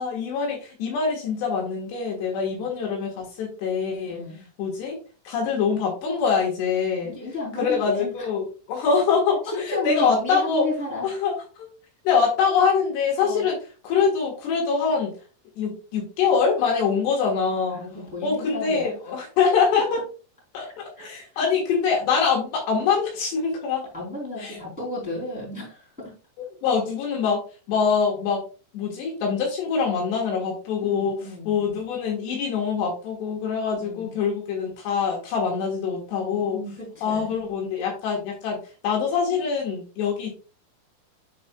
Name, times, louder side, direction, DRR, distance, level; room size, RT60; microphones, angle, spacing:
voice 1, 0.0-4.2 4.6-5.0 5.3-7.1 7.6-10.7 11.0-11.7 12.1-13.6 13.8-15.1 15.6-17.8 18.2-20.0 20.5-23.8 24.4-24.6 26.6-27.4 27.7-28.4 28.7-31.2 31.5-36.6 37.0-38.6 38.8-40.3, left 6 dB, 70° left, 0 dB, 3.6 m, -24 dB
voice 2, 4.0-4.4 7.0-8.3 9.4-11.1 13.2-13.4 17.7-18.9 19.7-19.8 20.6-21.5 23.9-26.1 30.8-31.6 33.8-34.1 36.2-37.4, left 2 dB, ahead, -4 dB, 2.5 m, -33 dB
10.5 x 4.3 x 2.3 m, 0.35 s
omnidirectional pair, 5.2 m